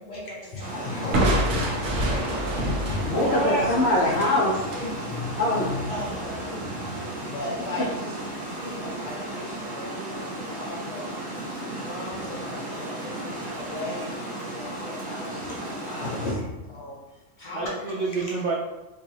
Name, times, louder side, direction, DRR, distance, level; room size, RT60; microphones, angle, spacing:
voice 1, 0.0-1.2 1.8-3.1 3.6-4.2 4.7-4.9 5.9-6.8 7.2-11.1 11.6-16.4 16.7-17.0 17.4-18.1, left 1 dB, 40° left, -5 dB, 1.0 m, -38 dB
Water, 0.6-16.3, right 1 dB, 35° right, 1.0 m, -35 dB
voice 2, 0.9-1.9 2.9-4.7 5.1-5.9 6.5-6.6 16.0-16.4, left 2 dB, 65° left, -2 dB, 0.7 m, -25 dB
Crushing, 1.1-4.9, right 1 dB, 85° right, 1.0 m, -27 dB
voice 3, 3.1-3.7 17.5-18.6, right 3 dB, 55° right, -5 dB, 0.6 m, -27 dB
4.5 x 2.4 x 2.8 m, 1.0 s
omnidirectional pair, 1.3 m